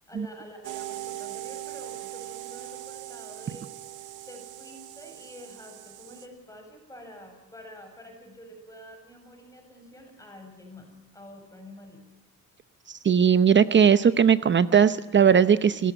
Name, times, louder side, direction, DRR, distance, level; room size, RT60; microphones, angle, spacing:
voice 1, 0.1-3.7 4.3-12.0, equal, 10° left, 3 dB, 7.4 m, -47 dB
sound 1, 0.6-6.3, right 15 dB, 90° right, 1.7 m, -40 dB
voice 2, 13.0-15.9, right 7 dB, 40° right, 14 dB, 0.8 m, -19 dB
28.0 x 14.0 x 9.1 m, 1.2 s
cardioid pair, 90°, 30 cm